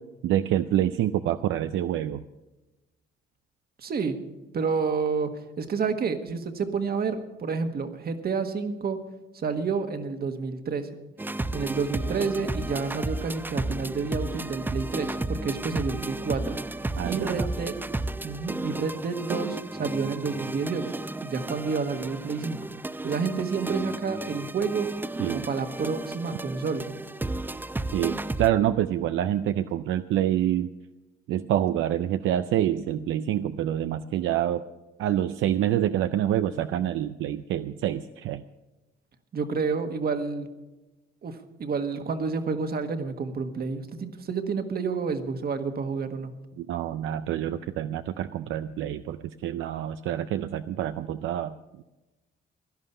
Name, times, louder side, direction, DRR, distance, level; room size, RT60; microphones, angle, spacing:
voice 1, 0.2-2.2 17.0-17.5 25.2-25.5 27.9-30.7 31.3-34.6 35.0-38.4 46.6-51.5, right 11 dB, 80° right, 10 dB, 0.5 m, -27 dB
voice 2, 3.8-4.2 4.5-9.0 9.3-10.9 11.5-16.6 17.0-17.8 18.2-20.9 21.2-22.6 23.0-24.9 25.2-26.9 39.3-40.5 41.2-46.3, right 5 dB, 50° right, 7 dB, 1.6 m, -29 dB
sound 1, 11.2-28.5, right 2 dB, 10° right, 0.5 m, -33 dB
17.0 x 11.5 x 5.5 m, 1.1 s
cardioid pair, 90°, 20 cm